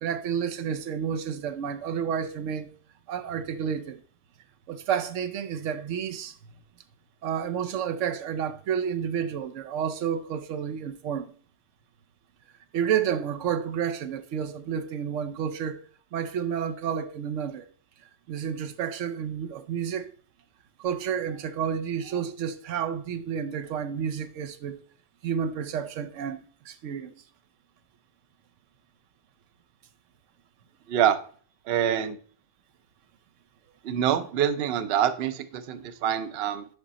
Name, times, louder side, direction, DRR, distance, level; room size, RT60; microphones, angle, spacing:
voice 1, 0.0-2.7 3.1-4.0 4.7-6.3 7.2-11.3 12.7-15.8 16.1-17.7 18.0-20.1 20.8-24.8 25.2-27.2, right 8 dB, 85° right, 1.0 m, -30 dB
voice 2, 30.9-31.2 31.7-32.2 33.8-36.7, right 10 dB, 65° right, 0.8 m, -25 dB
5.4 x 5.0 x 4.1 m
omnidirectional pair, 1.2 m